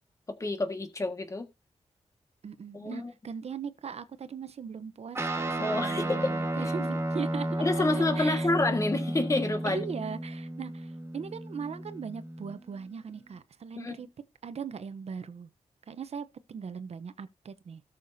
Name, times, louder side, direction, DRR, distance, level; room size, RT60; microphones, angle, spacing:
voice 1, 0.4-1.5 2.7-3.1 5.6-6.3 7.6-9.8 13.8-14.0, left 2 dB, 25° left, 1.6 m, -28 dB
voice 2, 2.4-7.6 7.9-8.5 9.6-15.5 15.9-17.8, right 6 dB, 60° right, 0.7 m, -39 dB
Guitar, 5.1-12.8, right 1 dB, 20° right, 1.4 m, -33 dB
17.5 x 6.6 x 2.7 m
wide cardioid pair, 160°, 12 cm